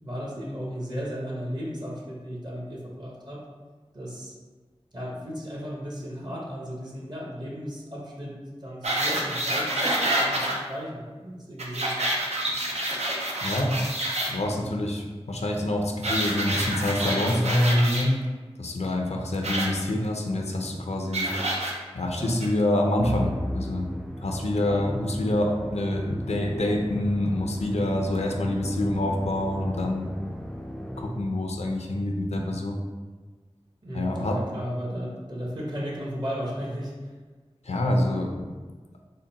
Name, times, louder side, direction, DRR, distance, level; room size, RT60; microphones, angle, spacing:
voice 1, 0.0-3.4 3.9-4.3 4.9-8.3 8.6-9.9 10.2-12.0 22.2-22.8 24.5-25.0 33.8-36.9, equal, 40° right, -3 dB, 1.0 m, -35 dB
sound 1, 8.8-10.5 11.6-14.3 16.0-18.0 19.4-19.7 21.1-21.7 22.4-22.5, right 1 dB, 85° right, 0.6 m, -27 dB
voice 2, 13.4-13.7 14.3-18.2 18.6-21.3 21.9-23.9 24.2-30.1 31.0-32.8 33.9-34.4 37.7-38.3, left 1 dB, 90° left, 1 dB, 0.5 m, -26 dB
Musical instrument, 23.0-31.5, equal, 5° left, 0.3 m, -37 dB
3.8 x 2.1 x 3.9 m, 1.4 s
wide cardioid pair, 50°, 11 cm